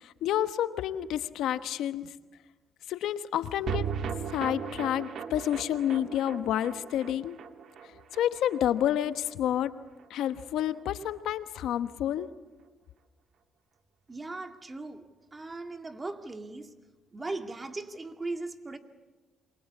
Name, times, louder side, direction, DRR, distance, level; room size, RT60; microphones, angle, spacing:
voice 1, 0.0-2.1 2.9-3.9 4.3-7.4 8.1-9.7 10.1-12.3, left 11 dB, 85° left, 11 dB, 1.1 m, -29 dB
sound 1, 3.7-10.1 10.4-10.5 10.7-10.8, right 7 dB, 65° right, 1.8 m, -38 dB
voice 2, 14.1-16.7 17.1-18.8, right 2 dB, 25° right, 6 dB, 2.1 m, -38 dB
27.5 x 23.0 x 8.5 m, 1.3 s
cardioid pair, 90°, 0 cm